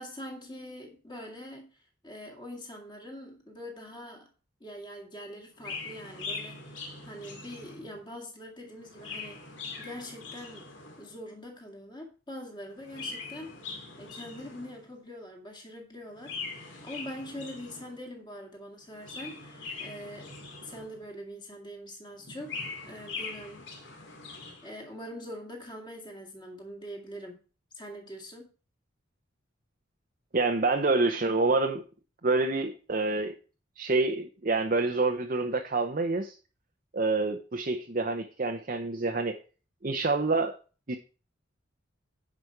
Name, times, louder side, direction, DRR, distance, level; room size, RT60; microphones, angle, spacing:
voice 1, 0.0-4.3 4.6-9.4 9.8-10.7 11.0-13.6 14.0-23.7 24.2-27.4 27.7-28.5, equal, 20° left, 1 dB, 2.1 m, -44 dB
Chirp tweet, 5.6-8.0 8.7-11.2 12.7-14.9 16.1-18.0 18.8-21.1 22.2-24.7, left 4 dB, 65° left, 2.3 m, -42 dB
voice 2, 30.3-31.8 32.2-33.3 33.8-36.4 36.9-39.4 39.8-40.6 40.9-41.0, right 3 dB, 40° right, 5 dB, 0.7 m, -27 dB
9.7 x 5.2 x 4.6 m, 0.36 s
head